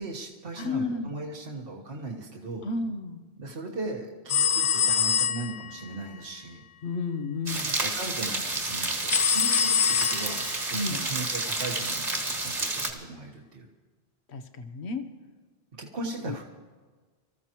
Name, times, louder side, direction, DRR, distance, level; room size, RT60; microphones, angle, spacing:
voice 1, 0.0-2.7 3.4-6.6 7.7-13.6 15.8-16.4, right 3 dB, 60° right, -1 dB, 1.6 m, -38 dB
voice 2, 0.6-1.1 2.6-3.2 6.8-7.7 10.7-11.0 14.3-15.0 16.3-16.4, left 3 dB, 85° left, 8 dB, 1.2 m, -31 dB
sound 1, 4.3-5.7 9.1-10.6, left 8 dB, 60° left, 0.7 m, -24 dB
sound 2, 7.5-12.9, right 2 dB, 40° right, 1.6 m, -30 dB
24.5 x 14.5 x 3.0 m, 1.5 s
omnidirectional pair, 1.1 m